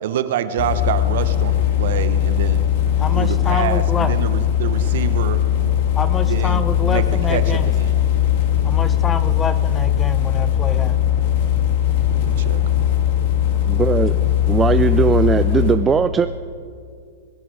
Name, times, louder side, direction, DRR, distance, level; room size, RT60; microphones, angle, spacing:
voice 1, 0.0-2.7 3.1-5.4 6.2-8.0 12.1-13.1, right 9 dB, 65° right, 12 dB, 0.9 m, -27 dB
sound 1, 0.6-15.7, left 10 dB, 55° left, 2.0 m, -19 dB
voice 2, 3.0-4.2 5.9-7.7 8.6-11.0, left 5 dB, 15° left, 12 dB, 0.7 m, -27 dB
voice 3, 13.7-14.1 14.5-16.3, right 6 dB, 15° right, 11 dB, 0.4 m, -18 dB
21.5 x 9.3 x 4.8 m, 2.2 s
hypercardioid pair, 135°, 0 cm